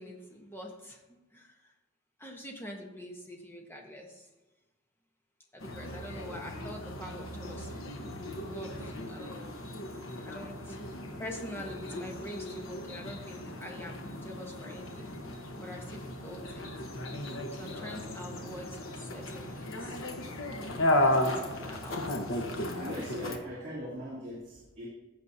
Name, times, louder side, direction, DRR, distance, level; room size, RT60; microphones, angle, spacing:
voice 1, 0.0-1.7 2.2-4.3 5.5-9.6 10.2-10.8 11.2-15.3 15.5-16.7 17.5-20.0 21.0-21.3 21.6-22.0, left 1 dB, 10° left, 1 dB, 1.1 m, -45 dB
sound 1, 5.6-23.4, left 1 dB, 70° left, 1.1 m, -35 dB
voice 2, 22.7-24.9, equal, 35° right, -8 dB, 2.4 m, -40 dB
15.0 x 6.3 x 2.8 m, 1.1 s
head